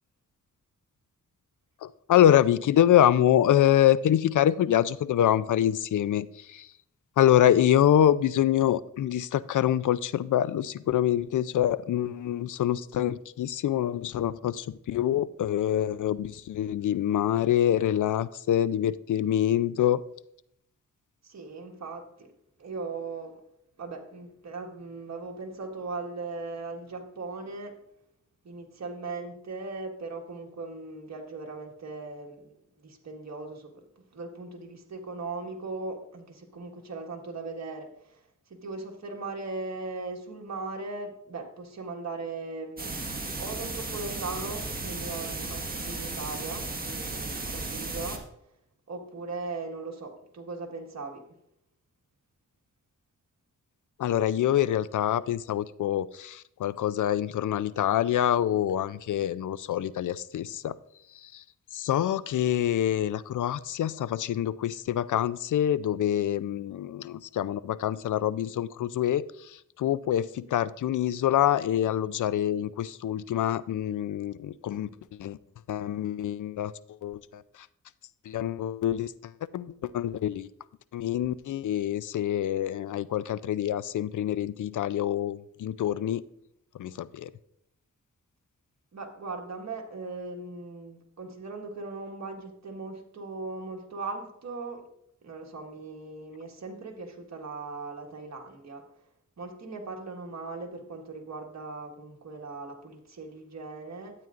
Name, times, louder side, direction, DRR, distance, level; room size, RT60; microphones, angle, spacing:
voice 1, 1.8-6.7 7.2-20.0 54.0-60.7 61.1-61.4 61.7-75.4 75.7-76.7 77.0-77.7 78.2-80.5 80.9-86.2 86.8-87.3, left 11 dB, 70° left, 17 dB, 0.5 m, -26 dB
voice 2, 21.2-22.3 22.6-23.4 23.8-27.8 28.4-38.2 38.5-43.1 43.4-48.2 48.9-51.2 88.9-94.9 95.2-98.8 99.4-104.1, right 3 dB, 55° right, 1 dB, 1.6 m, -39 dB
sound 1, 42.8-48.2, right 3 dB, 30° right, 1.5 m, -35 dB
12.5 x 8.8 x 2.5 m, 0.76 s
cardioid pair, 70°, 32 cm